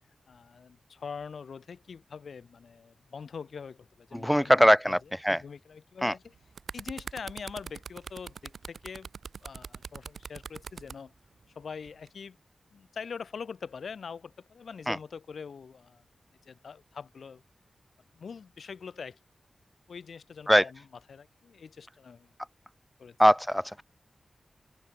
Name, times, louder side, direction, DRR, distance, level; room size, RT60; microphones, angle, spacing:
voice 1, 0.3-6.3 6.7-9.1 9.4-11.1 11.6-12.4 12.7-16.0 16.4-17.4 18.1-19.2 19.9-22.3 23.0-23.2, left 6 dB, 85° left, 3.7 m, -43 dB
voice 2, 4.1-5.0 5.2-5.4 6.0-6.1 14.9-15.0 20.5-20.6 23.2-23.8, equal, ahead, 1.6 m, -21 dB
sound 1, 6.3-11.0 11.9-12.1, right 5 dB, 80° right, 3.1 m, -42 dB
open air
wide cardioid pair, 120°, 0 cm